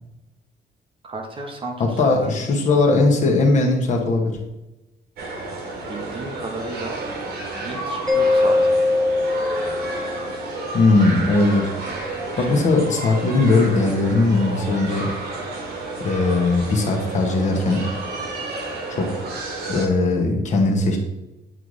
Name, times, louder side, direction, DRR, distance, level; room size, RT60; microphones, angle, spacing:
voice 1, 1.0-2.3 5.9-7.0 7.6-8.8 12.3-12.5, right 2 dB, 30° right, 3 dB, 0.8 m, -33 dB
voice 2, 1.8-4.4 10.7-11.7 12.1-15.1 16.0-17.8 18.9-19.3 19.7-21.0, left 3 dB, 45° left, 1 dB, 1.1 m, -19 dB
sound 1, 5.2-19.9, right 2 dB, 65° right, 1.3 m, -31 dB
Mallet percussion, 8.1-10.6, left 2 dB, 5° left, 1.1 m, -21 dB
8.7 x 3.2 x 3.9 m, 0.97 s
cardioid pair, 165°, 17 cm